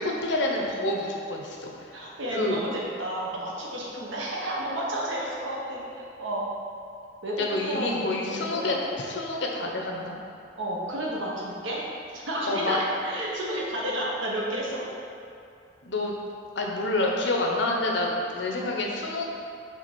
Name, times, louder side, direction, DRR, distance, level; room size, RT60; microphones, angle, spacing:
voice 1, 0.0-1.7 2.3-2.6 7.4-10.1 12.5-12.8 15.8-16.2 16.5-19.3, left 2 dB, 70° left, -1 dB, 0.9 m, -28 dB
voice 2, 1.9-6.5 7.2-8.8 10.6-11.8 12.1-14.8, right 1 dB, 85° right, -4 dB, 1.2 m, -31 dB
5.9 x 3.8 x 6.0 m, 2.6 s
head